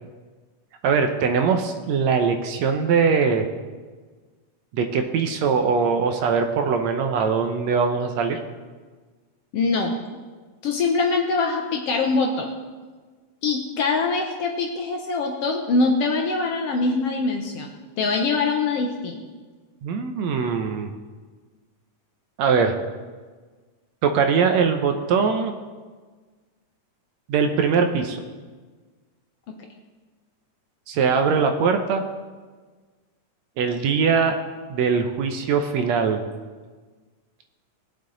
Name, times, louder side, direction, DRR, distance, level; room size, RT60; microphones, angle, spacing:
voice 1, 0.8-3.5 4.7-8.4 19.8-20.9 22.4-22.8 24.0-25.5 27.3-28.2 30.9-32.0 33.6-34.3 34.7-36.2, right 5 dB, 70° right, 6 dB, 1.9 m, -21 dB
voice 2, 9.5-9.9 10.6-12.5 13.4-17.7 18.0-19.2 29.5-29.6, left 3 dB, 65° left, 3 dB, 1.6 m, -23 dB
19.0 x 7.6 x 3.9 m, 1.4 s
omnidirectional pair, 3.5 m